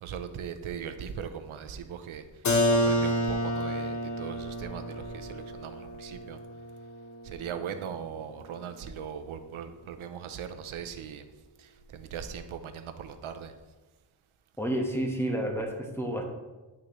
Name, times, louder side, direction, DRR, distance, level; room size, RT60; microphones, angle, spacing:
voice 1, 0.0-2.2 2.8-6.4 7.2-11.2 11.6-13.5, right 7 dB, 85° right, 9 dB, 0.7 m, -39 dB
Keyboard (musical), 2.4-8.0, equal, 35° left, 1.0 m, -30 dB
voice 2, 14.6-16.2, right 1 dB, 5° left, 1 dB, 1.2 m, -30 dB
9.8 x 6.2 x 3.1 m, 1.2 s
wide cardioid pair, 125°, 48 cm